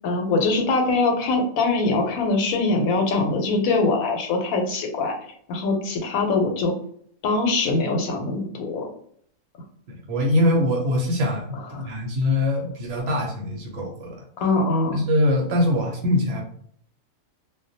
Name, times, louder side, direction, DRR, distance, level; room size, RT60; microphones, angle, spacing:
voice 1, 0.0-5.1 5.5-6.7 7.2-8.9 11.7-11.9 14.4-15.0, left 3 dB, 80° left, 3 dB, 1.0 m, -23 dB
voice 2, 9.9-14.2 14.9-16.4, left 1 dB, 65° right, 1 dB, 0.9 m, -23 dB
2.3 x 2.1 x 2.6 m, 0.63 s
omnidirectional pair, 1.4 m